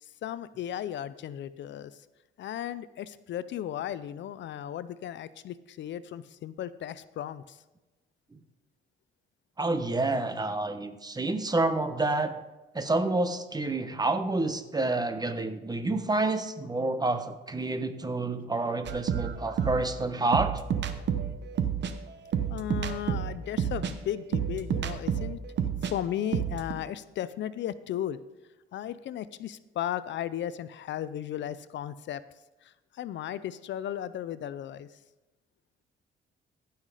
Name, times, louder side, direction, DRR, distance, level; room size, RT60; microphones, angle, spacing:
voice 1, 0.0-2.0 2.4-7.6 22.5-25.4 25.9-28.2 28.7-32.2 32.6-34.9, left 11 dB, 65° left, 15 dB, 0.5 m, -35 dB
voice 2, 9.6-12.3 12.7-20.6, right 2 dB, 20° right, 9 dB, 1.0 m, -28 dB
sound 1, 18.9-25.9 26.2-26.7, right 8 dB, 65° right, 1.0 m, -30 dB
15.0 x 5.7 x 4.9 m, 1.1 s
cardioid pair, 90°, 20 cm